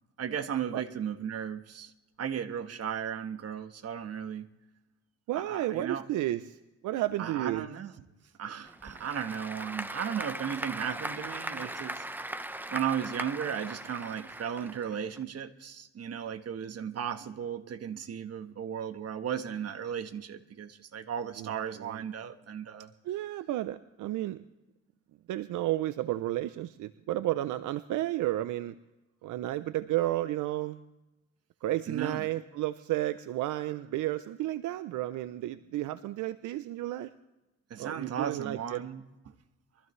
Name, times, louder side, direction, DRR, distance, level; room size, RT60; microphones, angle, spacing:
voice 1, 0.2-1.9 2.2-4.5 5.3-6.1 7.2-7.9 8.4-12.4 12.7-22.9 31.9-32.3 37.7-39.0, right 8 dB, 55° right, 1.2 m, -35 dB
voice 2, 5.3-6.6 6.8-7.7 21.4-22.0 23.0-24.4 25.3-28.8 29.2-30.8 31.6-37.1 37.8-38.8, right 15 dB, 80° right, 0.6 m, -32 dB
Applause / Crowd, 8.6-15.2, right 1 dB, 5° right, 0.7 m, -39 dB
23.0 x 14.5 x 3.2 m
cardioid pair, 90°, 30 cm